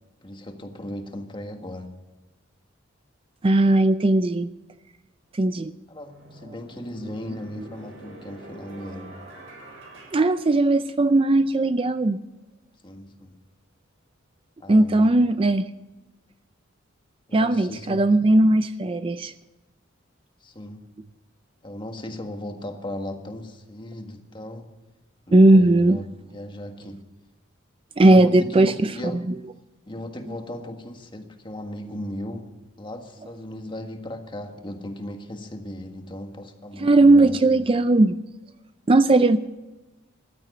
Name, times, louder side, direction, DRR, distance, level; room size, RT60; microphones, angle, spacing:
voice 1, 0.2-1.9 5.9-9.1 12.8-13.4 14.6-15.2 17.3-18.1 20.4-20.9 21.6-24.7 25.3-27.1 28.0-29.3 29.9-32.5 32.8-37.4, left 1 dB, 25° left, 5 dB, 1.6 m, -37 dB
voice 2, 3.4-4.5 5.3-5.7 10.1-12.2 14.7-15.7 17.3-19.3 25.3-26.0 28.0-29.3 36.8-38.2 38.9-39.4, right 2 dB, 25° right, 11 dB, 0.4 m, -18 dB
sound 1, 5.2-5.4 6.0-11.2, right 1 dB, 65° right, 7.3 m, -46 dB
14.5 x 12.0 x 6.7 m, 1.1 s
head